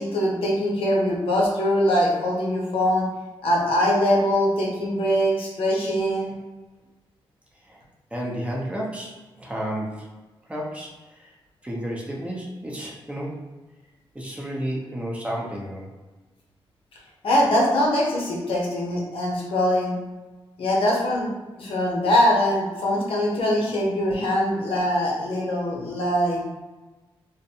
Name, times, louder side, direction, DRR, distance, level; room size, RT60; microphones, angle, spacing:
voice 1, 0.0-3.1 3.4-6.3 17.2-19.9 20.6-21.3 21.6-26.5, equal, 70° left, -3 dB, 0.7 m, -22 dB
voice 2, 8.1-10.1 10.5-11.3 11.6-13.4 14.1-15.9, equal, 15° right, -3 dB, 0.6 m, -32 dB
2.5 x 2.2 x 2.8 m, 1.2 s
cardioid pair, 80°, 10 cm